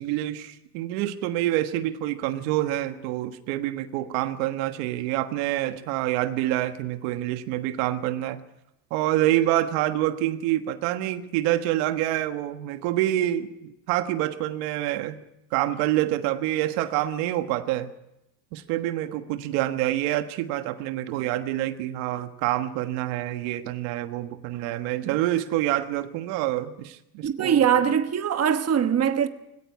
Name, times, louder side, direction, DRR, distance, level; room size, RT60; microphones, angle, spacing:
voice 1, 0.0-8.4 8.9-15.2 15.5-17.9 18.5-27.9, right 14 dB, 85° right, 1.5 m, -27 dB
voice 2, 27.2-29.3, right 8 dB, 30° right, 1.2 m, -22 dB
19.5 x 17.0 x 8.4 m
cardioid pair, 125°, 47 cm